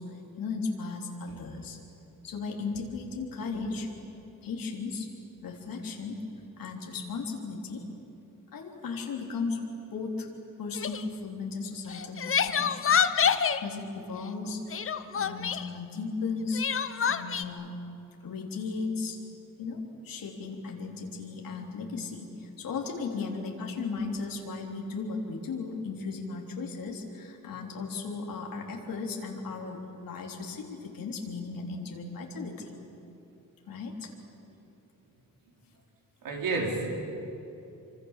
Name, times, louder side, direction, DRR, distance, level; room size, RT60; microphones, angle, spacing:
voice 1, 0.0-1.8 2.2-3.9 4.4-5.1 5.4-6.2 6.6-7.8 8.5-10.3 10.6-13.0 13.6-14.6 15.1-16.6 17.0-17.8 18.2-19.2 19.6-32.8 33.7-34.1, left 4 dB, 75° left, 0 dB, 3.6 m, -36 dB
Crying sobbing, 10.7-11.0 11.9-13.6 14.7-15.7 16.5-17.4, left 7 dB, 40° left, 0.9 m, -26 dB
voice 2, 36.2-36.9, right 3 dB, 75° right, 0 dB, 4.9 m, -30 dB
26.5 x 26.0 x 7.5 m, 2.9 s
wide cardioid pair, 155°, 34 cm